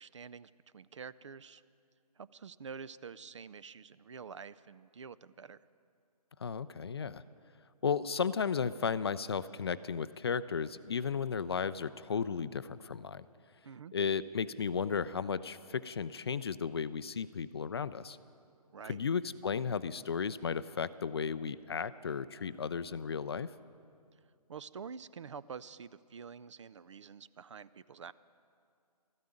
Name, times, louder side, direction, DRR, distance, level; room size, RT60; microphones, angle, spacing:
voice 1, 0.0-1.6 2.2-5.6 13.6-13.9 18.7-19.0 24.5-28.1, right 6 dB, 50° right, 17 dB, 0.4 m, -47 dB
voice 2, 6.4-7.2 7.8-13.3 13.9-18.2 18.8-23.5, left 6 dB, 40° left, 15 dB, 0.4 m, -34 dB
13.5 x 9.4 x 9.8 m, 2.4 s
figure-of-eight pair, 150°, 20 cm